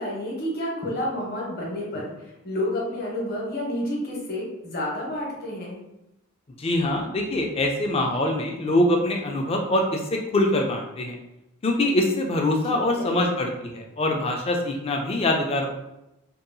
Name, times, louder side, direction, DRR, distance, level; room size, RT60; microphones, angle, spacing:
voice 1, 0.0-5.8 12.7-13.2, left 1 dB, 45° left, -3 dB, 0.8 m, -30 dB
voice 2, 6.6-11.2 11.6-15.7, left 1 dB, 30° left, 2 dB, 0.3 m, -24 dB
2.7 x 2.2 x 2.5 m, 0.90 s
head